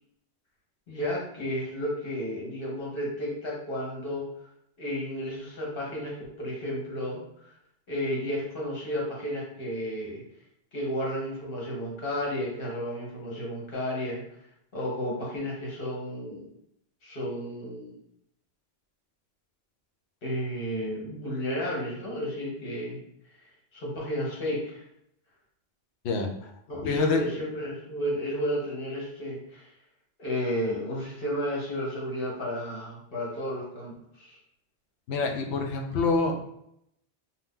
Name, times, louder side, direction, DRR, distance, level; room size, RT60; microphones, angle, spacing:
voice 1, 0.9-4.2 4.8-7.5 7.9-10.2 10.7-14.2 14.7-16.5 17.0-17.9 20.2-23.0 23.4-24.8 26.7-29.7 30.2-34.4, equal, 60° left, -4 dB, 1.2 m, -32 dB
voice 2, 26.8-27.2 35.1-36.3, left 4 dB, 85° left, 4 dB, 0.8 m, -26 dB
2.7 x 2.2 x 3.6 m, 0.75 s
omnidirectional pair, 1.1 m